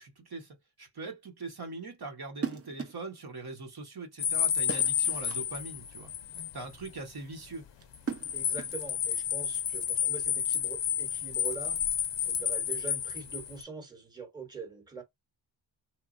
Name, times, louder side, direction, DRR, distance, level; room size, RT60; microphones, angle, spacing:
voice 1, 0.0-6.1 6.5-7.7, right 3 dB, 50° right, 1.0 m, -42 dB
sound 1, 2.3-3.1 4.7-5.5 7.8-8.9, right 6 dB, 30° right, 0.6 m, -38 dB
sound 2, 4.2-6.6 6.9-7.0 7.9-13.6, left 9 dB, 65° left, 0.6 m, -31 dB
voice 2, 8.3-11.8 12.2-15.0, right 4 dB, 10° right, 1.0 m, -43 dB
3.0 x 2.3 x 2.4 m
wide cardioid pair, 85°, 48 cm